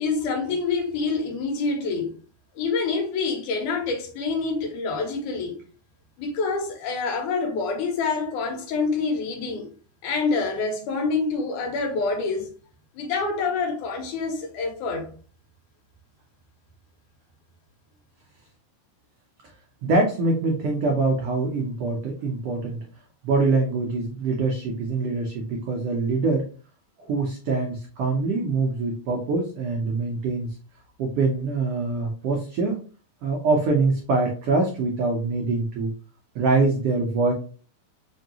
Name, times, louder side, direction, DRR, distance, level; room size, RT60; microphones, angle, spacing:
voice 1, 0.0-2.1 2.6-5.6 6.2-9.7 10.0-12.5 12.9-15.1, left 4 dB, 80° left, 2.4 m, -26 dB
voice 2, 19.8-22.8 23.2-26.5 27.0-30.6 31.0-32.8 33.2-35.9 36.3-37.3, right 3 dB, 85° right, 1.3 m, -24 dB
5.0 x 2.6 x 2.8 m
omnidirectional pair, 3.6 m